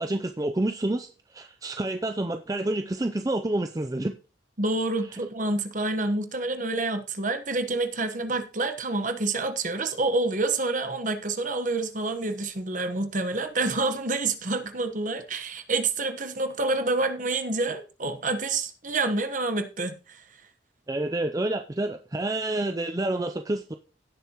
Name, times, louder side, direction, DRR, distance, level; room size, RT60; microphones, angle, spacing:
voice 1, 0.0-4.2 20.9-23.7, right 1 dB, 20° right, 0.5 m, -28 dB
voice 2, 4.6-20.2, right 2 dB, 45° right, 1.2 m, -28 dB
16.5 x 6.9 x 3.0 m
head